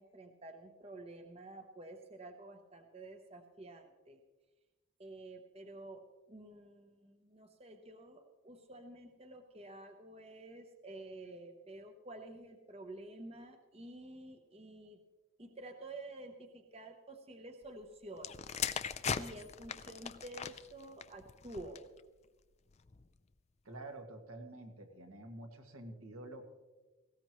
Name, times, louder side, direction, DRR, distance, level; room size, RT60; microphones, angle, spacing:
voice 1, 0.0-4.2 5.0-15.0 15.4-18.5 19.2-21.8, right 2 dB, 25° right, 5 dB, 0.8 m, -50 dB
sound 1, 18.2-22.0 22.8-23.1, left 7 dB, 30° left, 0.4 m, -40 dB
voice 2, 23.6-26.5, right 1 dB, 75° right, 3 dB, 1.9 m, -48 dB
19.0 x 16.5 x 3.1 m, 1.2 s
head